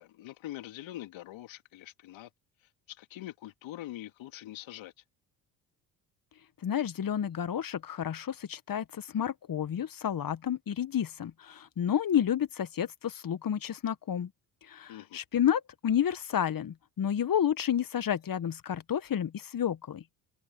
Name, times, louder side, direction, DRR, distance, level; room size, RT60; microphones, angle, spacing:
voice 1, 0.0-2.3 2.9-4.9 14.9-15.2, left 14 dB, 70° left, 3.8 m, -44 dB
voice 2, 6.6-14.3 14.6-20.0, left 9 dB, 45° left, 1.7 m, -30 dB
open air
hypercardioid pair, 50°, 48 cm